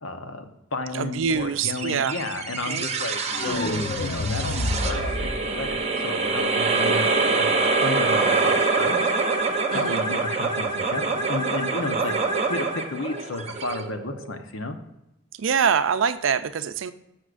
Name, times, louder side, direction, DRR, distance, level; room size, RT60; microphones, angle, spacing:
voice 1, 0.0-9.0 9.7-14.8, left 2 dB, 80° left, 7 dB, 0.9 m, -33 dB
voice 2, 0.9-2.2 2.7-2.9 9.7-10.0 15.3-16.9, right 6 dB, 70° right, 12 dB, 0.5 m, -24 dB
sound 1, 1.7-14.4, right 3 dB, 35° right, 0.8 m, -25 dB
sound 2, 3.3-6.3, left 2 dB, 40° left, 0.5 m, -29 dB
12.5 x 6.3 x 2.5 m, 0.87 s
head